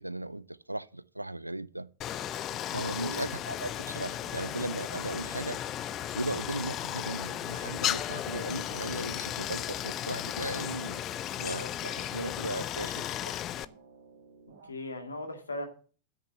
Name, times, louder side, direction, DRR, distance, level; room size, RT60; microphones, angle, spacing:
voice 1, 0.0-1.9 2.7-5.6 6.1-11.0 11.3-13.4, right 1 dB, 85° right, 0.4 m, -37 dB
Stream, 2.0-13.7, left 11 dB, 30° left, 0.5 m, -35 dB
sound 1, 2.1-14.7, right 4 dB, 60° right, 2.4 m, -55 dB
voice 2, 2.7-3.3 14.6-15.7, left 2 dB, 75° left, 1.9 m, -39 dB
9.1 x 6.6 x 7.3 m
figure-of-eight pair, 90°, 0 cm